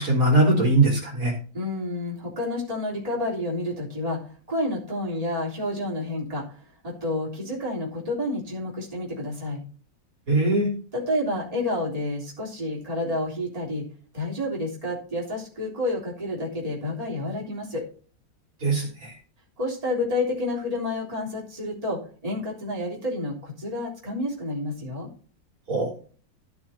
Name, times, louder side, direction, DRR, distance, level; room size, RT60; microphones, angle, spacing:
voice 1, 0.0-1.3 10.3-10.7 18.6-19.1 25.7-25.9, right 2 dB, 45° right, -1 dB, 3.8 m, -21 dB
voice 2, 1.5-6.4 6.8-9.6 10.9-13.8 14.1-17.8 19.6-25.1, left 1 dB, 20° right, -4 dB, 3.7 m, -29 dB
14.0 x 6.4 x 4.4 m, 0.40 s
omnidirectional pair, 2.1 m